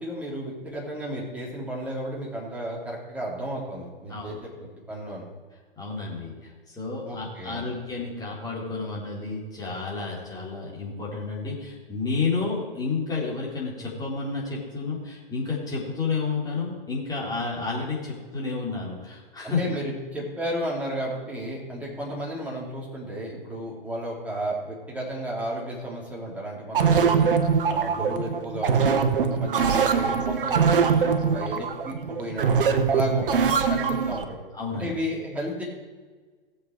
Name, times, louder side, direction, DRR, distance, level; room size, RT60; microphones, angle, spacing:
voice 1, 0.0-4.5 4.9-5.2 7.0-7.6 19.4-27.3 27.7-34.4 34.7-35.6, equal, 5° right, -5 dB, 3.6 m, -33 dB
voice 2, 5.8-19.6 34.5-34.9, left 4 dB, 15° left, -4 dB, 3.7 m, -31 dB
sound 1, 26.7-34.3, right 6 dB, 65° right, 1.2 m, -22 dB
17.0 x 7.0 x 4.8 m, 1.4 s
figure-of-eight pair, 115°, 29 cm